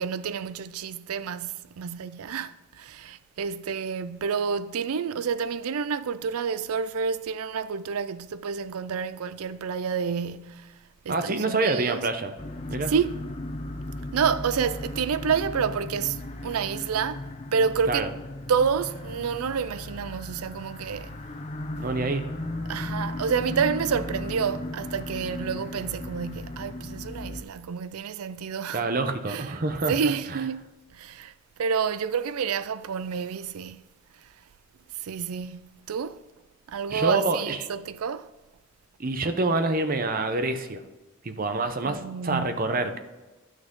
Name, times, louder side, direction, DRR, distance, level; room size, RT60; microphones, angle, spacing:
voice 1, 0.0-10.8 11.0-12.1 12.9-13.2 14.1-18.1 18.5-21.2 22.7-28.9 29.3-29.6 29.9-31.3 31.6-33.8 34.2-34.3 34.9-36.2 36.7-38.3 41.8-42.6, right 6 dB, 85° right, 0.4 m, -29 dB
voice 2, 11.1-12.3 12.7-12.9 17.9-18.1 21.8-22.2 28.7-30.1 36.9-37.6 39.0-40.8 41.2-43.0, right 3 dB, 40° right, 0.7 m, -26 dB
sound 1, 12.4-27.4, left 1 dB, 30° left, 0.5 m, -36 dB
9.9 x 6.3 x 3.7 m
head